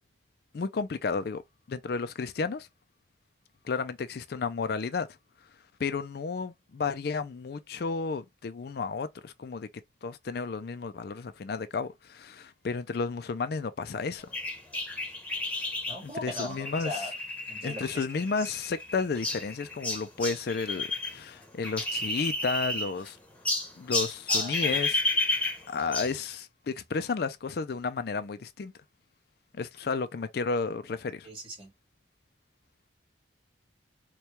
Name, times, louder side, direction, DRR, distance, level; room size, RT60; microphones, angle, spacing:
voice 1, 0.5-1.4 1.7-2.7 3.6-5.1 5.8-9.7 10.0-14.3 16.0-17.0 17.6-23.2 23.8-28.7 29.5-31.3, left 4 dB, 50° left, 0.4 m, -32 dB
sound 1, 14.3-21.2 21.4-23.1 23.4-26.2, left 2 dB, 5° left, 0.9 m, -31 dB
voice 2, 15.9-17.1 17.5-18.5 24.3-24.8 31.2-31.7, equal, 30° right, 2.0 m, -39 dB
4.4 x 2.3 x 3.1 m
head